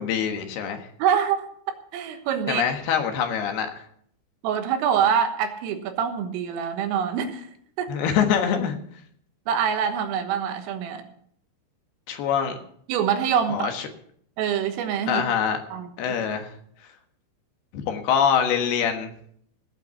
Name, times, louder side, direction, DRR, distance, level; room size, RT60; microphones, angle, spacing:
voice 1, 0.0-0.9 2.5-3.8 7.9-8.8 12.1-12.6 13.5-13.8 15.1-15.6 16.0-16.5 17.7-19.1, left 8 dB, 65° left, 5 dB, 2.9 m, -24 dB
voice 2, 1.0-2.6 4.4-7.5 7.8-8.0 9.5-11.0 12.9-13.7 14.4-15.2 15.7-15.9, right 8 dB, 85° right, 7 dB, 3.9 m, -25 dB
17.5 x 5.8 x 8.1 m, 0.65 s
omnidirectional pair, 5.7 m